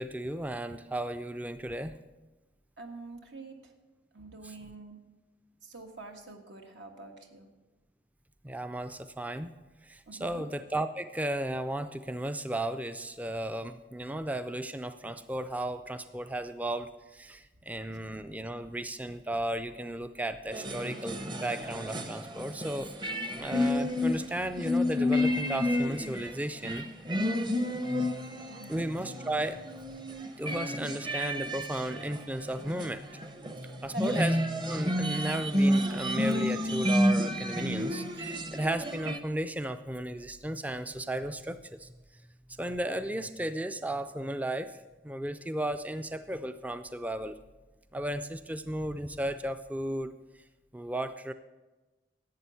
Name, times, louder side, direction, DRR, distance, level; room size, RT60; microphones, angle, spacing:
voice 1, 0.0-1.9 4.4-4.5 8.4-9.5 9.8-22.9 23.3-26.8 28.7-29.6 30.4-33.1 33.8-34.4 34.7-41.9 42.6-44.8 45.0-47.4 47.9-50.1 50.7-51.3, right 1 dB, 10° right, 10 dB, 0.3 m, -34 dB
voice 2, 2.8-3.7 4.1-5.0 5.6-7.5 10.1-10.5 28.5-28.8 33.9-34.1, right 3 dB, 80° right, 4 dB, 1.6 m, -45 dB
sound 1, 20.5-26.4 26.6-39.2, left 1 dB, 25° right, 0.8 m, -30 dB
11.5 x 8.2 x 6.9 m, 1.2 s
head